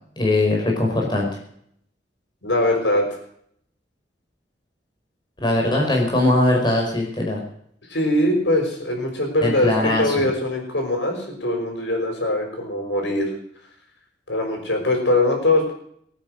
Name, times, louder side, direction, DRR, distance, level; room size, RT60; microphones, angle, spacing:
voice 1, 0.2-1.3 5.4-7.4 9.4-10.3, left 2 dB, 25° left, -1 dB, 5.1 m, -20 dB
voice 2, 2.4-3.2 7.9-13.3 14.3-15.7, left 1 dB, 75° left, 2 dB, 6.0 m, -22 dB
22.5 x 9.4 x 6.6 m, 0.67 s
head